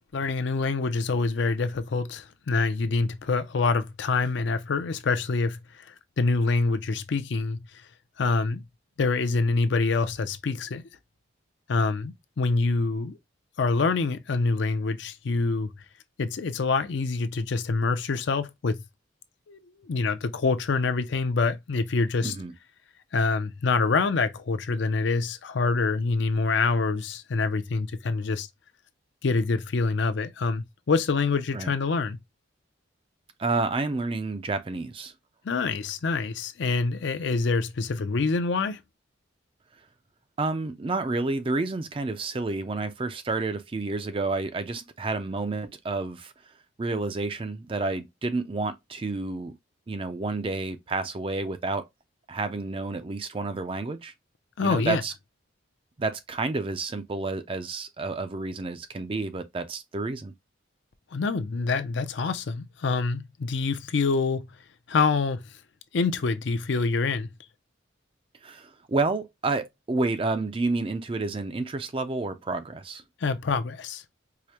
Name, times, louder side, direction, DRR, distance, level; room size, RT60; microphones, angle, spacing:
voice 1, 0.1-5.6 6.2-7.6 8.2-8.6 9.0-10.8 11.7-13.2 13.6-15.7 16.2-18.8 19.5-22.3 23.1-28.5 29.2-32.2 35.4-38.8 54.6-55.0 61.1-64.5 64.9-65.4 65.9-67.3 73.2-74.0, left 4 dB, 60° left, 0.5 m, -26 dB
voice 2, 22.2-22.5 31.5-31.7 33.4-35.1 40.4-46.3 46.8-49.5 49.9-51.9 52.3-54.1 54.6-55.1 56.0-60.3 68.4-73.0, right 3 dB, 25° right, 0.4 m, -30 dB
4.8 x 2.1 x 2.8 m
head